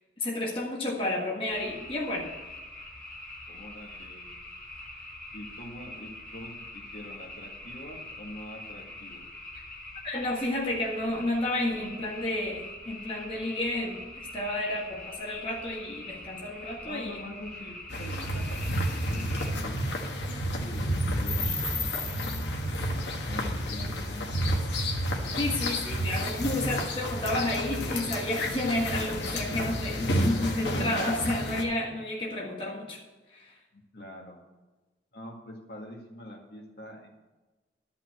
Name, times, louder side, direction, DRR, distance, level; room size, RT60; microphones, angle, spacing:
voice 1, 0.2-2.3 10.0-17.2 25.4-33.0 33.3-33.5, left 1 dB, 30° left, -3 dB, 1.6 m, -31 dB
sound 1, 1.4-19.5, left 1 dB, 10° left, 4.7 m, -44 dB
voice 2, 3.4-4.4 5.3-9.3 16.8-22.0 23.2-24.8 33.7-34.4 35.1-37.1, left 1 dB, 60° left, 0 dB, 2.0 m, -44 dB
sound 2, 17.9-31.6, equal, 80° left, 1.5 m, -30 dB
11.5 x 5.7 x 7.8 m, 1.2 s
head